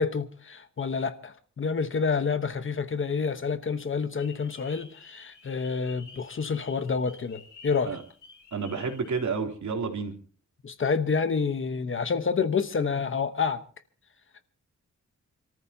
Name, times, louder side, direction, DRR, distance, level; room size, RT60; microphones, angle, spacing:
voice 1, 0.0-8.0 10.6-13.6, left 5 dB, 40° left, 1.1 m, -28 dB
sound 1, 4.2-9.2, left 5 dB, 85° left, 5.6 m, -51 dB
voice 2, 8.5-10.1, right 5 dB, 75° right, 3.2 m, -30 dB
29.5 x 14.0 x 2.8 m
wide cardioid pair, 155°, 30 cm